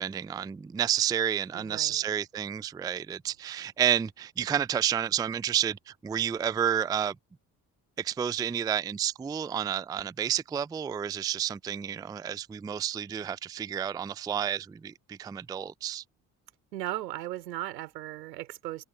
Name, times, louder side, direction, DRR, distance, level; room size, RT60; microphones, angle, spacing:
voice 1, 0.0-7.2 8.0-16.0, right 9 dB, 10° right, 0.3 m, -30 dB
voice 2, 1.5-2.0 16.7-18.8, right 15 dB, 90° right, 3.5 m, -37 dB
hypercardioid pair, 45°, 48 cm